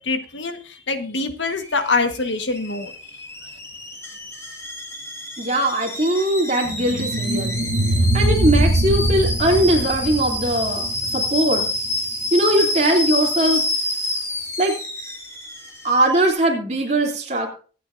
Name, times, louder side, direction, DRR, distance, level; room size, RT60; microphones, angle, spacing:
voice 1, 0.1-0.6 0.9-2.9, left 3 dB, 75° left, 7 dB, 1.4 m, -24 dB
Alarm / Boiling, 1.4-16.3, left 1 dB, 15° left, 2.2 m, -28 dB
voice 2, 5.4-7.5 8.1-10.9 11.1-11.6 12.3-13.6 14.6-14.7 15.8-17.5, right 1 dB, 35° right, 0 dB, 3.0 m, -20 dB
sound 1, 6.7-11.8, right 1 dB, 65° right, 1.1 m, -22 dB
23.5 x 8.5 x 2.6 m, 0.39 s
head